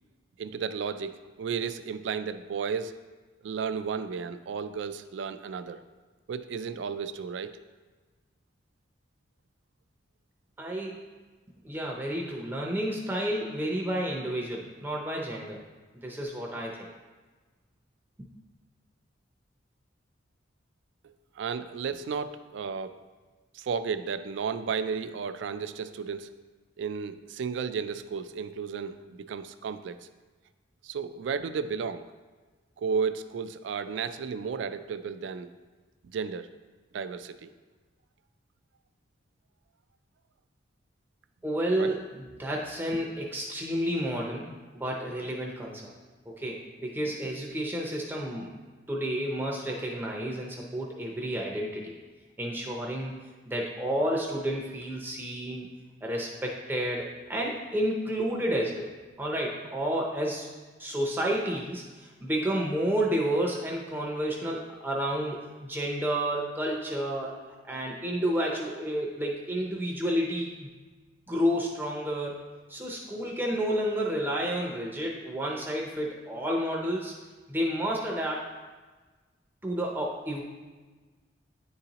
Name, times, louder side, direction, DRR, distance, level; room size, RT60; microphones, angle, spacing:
voice 1, 0.4-3.0 3.4-5.8 6.3-7.6 21.0-23.0 23.5-26.3 26.8-30.0 30.8-32.1 32.8-35.5 36.1-36.5 36.9-37.5 41.8-41.9, right 6 dB, 70° right, 11 dB, 0.3 m, -33 dB
voice 2, 10.6-10.9 11.6-15.6 15.9-16.9 41.4-45.9 46.3-48.5 48.9-51.9 52.4-53.1 53.5-55.7 56.0-58.9 59.2-60.5 60.8-67.3 67.6-70.7 71.3-77.1 77.5-78.5 79.6-80.4, equal, 10° right, -2 dB, 0.5 m, -30 dB
9.5 x 3.9 x 2.8 m, 1.3 s
head